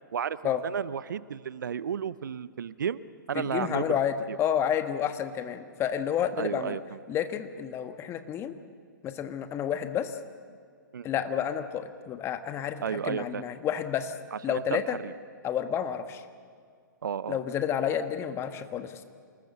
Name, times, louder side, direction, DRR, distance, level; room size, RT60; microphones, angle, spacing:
voice 1, 0.1-3.0 3.3-4.0 4.3-4.4 6.4-7.0 10.9-11.1 12.8-13.4 14.3-15.1 17.0-17.4, right 8 dB, 70° right, 17 dB, 0.7 m, -33 dB
voice 2, 3.3-6.8 7.1-8.5 9.0-10.2 11.0-14.1 14.4-15.0 15.4-16.2 17.3-19.0, left 9 dB, 25° left, 9 dB, 1.5 m, -30 dB
27.5 x 19.5 x 6.9 m, 2.1 s
hypercardioid pair, 120°, 11 cm